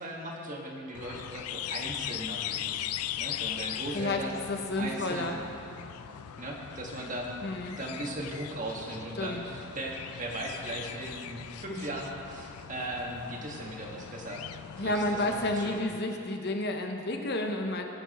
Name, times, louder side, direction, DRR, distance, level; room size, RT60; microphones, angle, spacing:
voice 1, 0.0-4.4 4.8-5.3 6.4-14.4 14.8-15.8, right 1 dB, 35° right, -1 dB, 1.5 m, -38 dB
sound 1, 0.9-15.8, left 11 dB, 80° left, 0.4 m, -40 dB
voice 2, 4.5-5.4 7.4-7.8 9.2-9.4 14.8-17.9, left 2 dB, 45° left, 3 dB, 0.9 m, -31 dB
20.5 x 7.2 x 4.2 m, 2.8 s
head